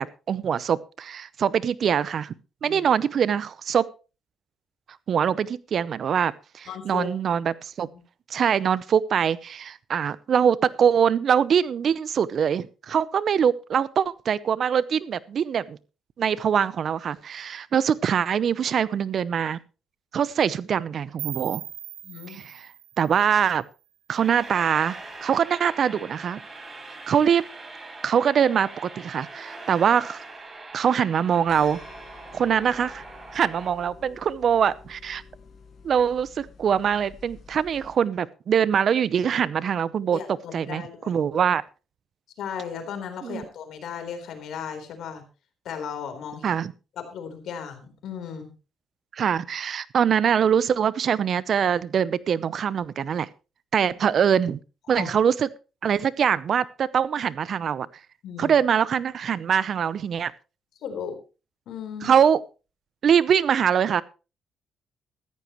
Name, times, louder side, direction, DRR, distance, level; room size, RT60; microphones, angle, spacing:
voice 1, 0.0-2.3 2.6-3.9 5.1-7.9 8.3-15.8 16.2-19.6 20.1-21.6 22.3-22.7 23.0-23.6 24.1-26.4 27.1-27.4 28.0-30.2 30.7-31.8 32.3-33.0 33.3-35.2 35.8-40.2 40.5-41.6 43.2-43.4 46.4-46.7 49.1-53.3 53.7-54.6 54.9-55.5 55.8-57.9 58.4-60.3 62.0-62.4 63.0-64.0, right 8 dB, 55° right, 0.7 m, -23 dB
voice 2, 6.7-7.1 7.8-8.0 22.0-22.4 40.1-41.1 42.4-45.2 45.6-46.5 47.0-48.5 54.9-55.1 58.2-58.6 60.8-61.2 61.7-62.1, left 7 dB, 75° left, 3.9 m, -36 dB
sound 1, 21.2-24.1, right 12 dB, 90° right, 1.5 m, -40 dB
sound 2, 24.2-33.7, right 3 dB, 35° right, 4.8 m, -42 dB
sound 3, 31.5-38.0, left 5 dB, 50° left, 6.1 m, -49 dB
14.5 x 14.0 x 3.1 m
cardioid pair, 90°, 0 cm